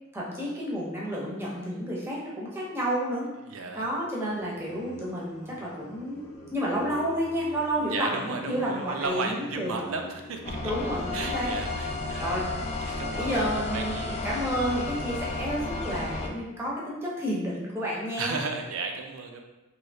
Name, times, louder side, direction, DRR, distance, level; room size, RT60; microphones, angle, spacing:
voice 1, 0.1-3.3 3.8-9.8 10.6-11.5 12.2-12.4 13.1-18.4, equal, 10° right, -5 dB, 0.7 m, -31 dB
voice 2, 3.4-3.9 7.9-10.7 11.1-12.6 12.8-14.3 18.2-19.4, right 4 dB, 70° right, 4 dB, 0.4 m, -34 dB
sound 1, 4.3-13.2, left 2 dB, 80° left, 0.6 m, -46 dB
sound 2, 10.4-16.3, left 3 dB, 30° left, 0.3 m, -32 dB
3.2 x 2.7 x 2.7 m, 1.1 s
head